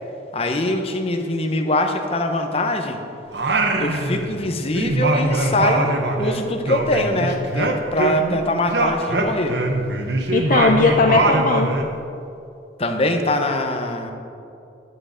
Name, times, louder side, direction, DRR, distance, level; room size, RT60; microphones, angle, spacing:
voice 1, 0.3-3.0 3.8-9.5 12.8-14.1, left 1 dB, 35° left, 5 dB, 0.9 m, -23 dB
Singing, 3.3-4.5 4.7-8.4 8.7-11.9, right 2 dB, 70° right, 1.0 m, -22 dB
voice 2, 10.3-11.7, left 3 dB, 50° left, 3 dB, 0.5 m, -18 dB
10.5 x 8.8 x 5.1 m, 2.7 s
head